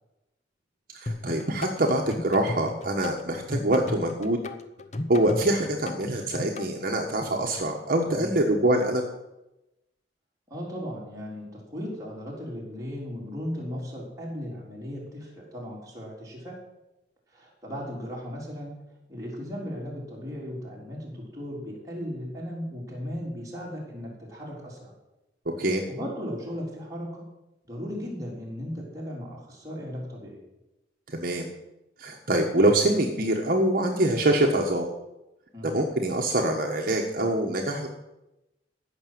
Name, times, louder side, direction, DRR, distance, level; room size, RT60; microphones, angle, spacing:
voice 1, 0.9-4.4 5.1-9.0 25.6-25.8 31.1-31.5 32.0-34.9 35.6-37.9, right 1 dB, 55° right, 1 dB, 1.3 m, -24 dB
sound 1, 1.1-6.7, left 2 dB, 40° left, 0.8 m, -35 dB
voice 2, 10.5-16.6 17.3-18.7 19.1-24.9 25.9-27.3 27.7-30.4 35.5-35.8, equal, 20° right, -4 dB, 3.9 m, -36 dB
15.0 x 6.2 x 7.7 m, 0.96 s
head